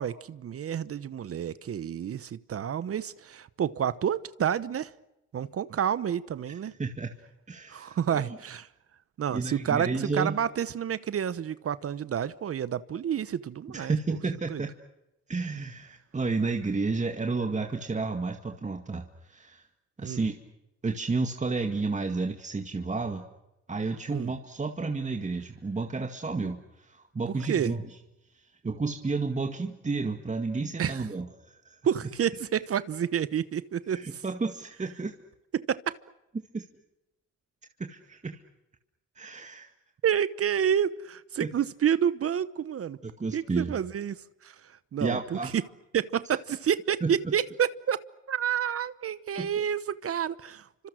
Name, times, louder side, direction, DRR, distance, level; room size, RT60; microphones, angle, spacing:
voice 1, 0.0-4.9 5.3-6.7 7.7-8.7 9.2-14.0 14.5-14.6 20.0-20.2 24.1-24.3 27.5-27.7 30.8-31.1 31.8-34.2 35.5-35.8 40.0-43.0 43.3-44.2 44.4-44.5 44.9-45.5 45.9-48.0 48.3-50.9, right 9 dB, 50° right, 1.0 m, -29 dB
voice 2, 6.8-7.1 7.5-8.4 9.3-10.4 13.7-14.7 15.3-19.6 20.0-20.3 20.8-23.3 23.7-27.8 28.6-31.8 33.9-35.2 36.5-36.6 37.8-38.4 39.2-39.7 41.4-41.5 43.0-43.7 45.0-45.6 47.0-47.1 49.4-49.5, right 3 dB, 25° right, 2.1 m, -31 dB
29.5 x 26.0 x 6.4 m
cardioid pair, 90°, 30 cm